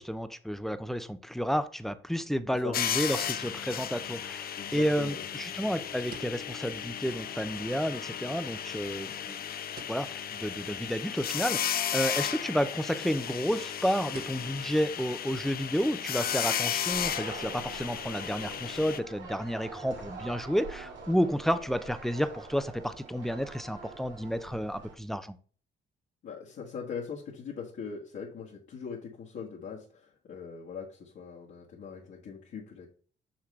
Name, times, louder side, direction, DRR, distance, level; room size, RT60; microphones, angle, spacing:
voice 1, 0.0-9.4 9.9-25.4, equal, ahead, 12 dB, 0.5 m, -31 dB
sound 1, 2.7-19.0, left 9 dB, 50° left, 0.5 m, -35 dB
voice 2, 4.6-5.2 26.2-32.9, left 6 dB, 65° left, -5 dB, 1.4 m, -41 dB
sound 2, 6.1-7.0 7.3-7.4 7.7-7.8 8.4-9.3 9.7-10.1 10.3-10.6 11.1-11.2 12.2-12.4 12.8-13.0 13.2-13.6 14.1-15.2 15.5-15.6 16.2-16.5 16.8-16.9, right 5 dB, 45° right, 1.0 m, -51 dB
sound 3, 16.9-24.9, right 4 dB, 75° right, 2.2 m, -45 dB
6.3 x 5.9 x 3.2 m, 0.43 s
cardioid pair, 90°, 20 cm